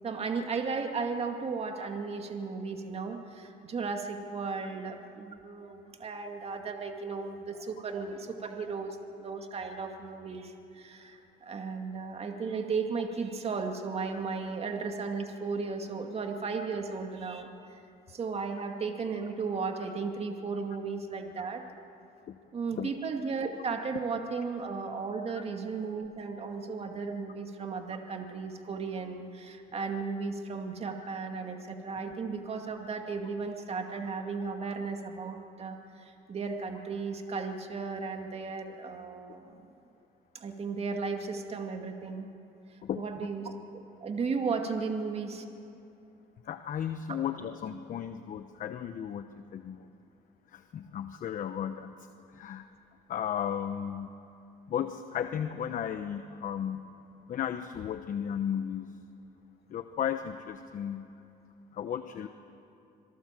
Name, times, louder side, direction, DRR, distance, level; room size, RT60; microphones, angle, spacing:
voice 1, 0.0-17.5 18.1-21.6 22.5-39.7 40.3-42.3 43.0-45.5 47.1-47.2, right 4 dB, 35° right, 4 dB, 2.2 m, -35 dB
voice 2, 46.4-49.9 50.5-52.1 52.3-52.7 53.1-54.1 54.7-56.9 57.3-58.9 59.7-61.1 61.7-62.3, left 9 dB, 50° left, 9 dB, 0.9 m, -35 dB
26.5 x 18.0 x 7.6 m, 2.6 s
cardioid pair, 110°, 17 cm